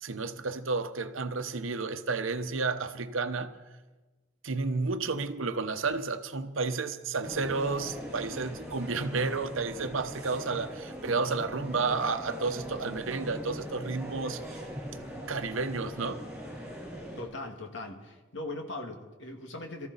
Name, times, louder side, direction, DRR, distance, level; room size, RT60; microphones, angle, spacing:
voice 1, 0.0-3.5 4.4-14.6 15.3-16.2, right 4 dB, 80° right, 0.9 m, -31 dB
sound 1, 7.2-17.2, equal, 5° right, 7.2 m, -41 dB
voice 2, 17.2-19.9, left 2 dB, 65° left, 1.8 m, -39 dB
23.5 x 14.0 x 4.0 m
head